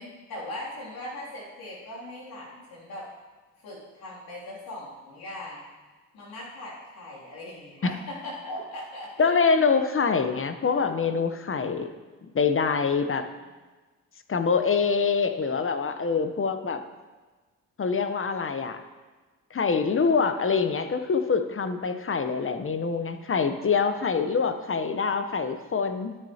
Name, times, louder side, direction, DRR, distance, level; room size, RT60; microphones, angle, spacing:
voice 1, 0.0-3.1 3.6-5.6 6.1-9.3, left 1 dB, 85° left, -6 dB, 2.9 m, -39 dB
voice 2, 9.2-11.9 12.2-13.3 14.3-16.8 17.8-18.8 19.5-26.2, left 5 dB, 35° left, 8 dB, 0.8 m, -25 dB
12.5 x 6.4 x 2.9 m, 1.3 s
supercardioid pair, 45°, 35 cm